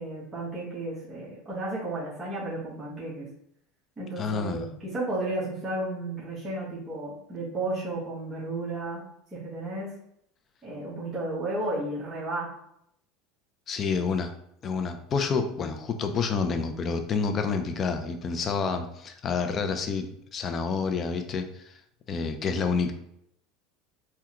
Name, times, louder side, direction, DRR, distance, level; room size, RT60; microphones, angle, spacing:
voice 1, 0.0-3.3 4.0-9.0 9.3-9.9 10.6-12.5, right 2 dB, 20° right, -9 dB, 1.2 m, -33 dB
voice 2, 4.2-4.7 13.7-14.3 14.6-21.8 22.1-22.9, left 5 dB, 35° left, 7 dB, 0.4 m, -28 dB
3.4 x 2.2 x 3.0 m, 0.73 s
supercardioid pair, 125°, 0 cm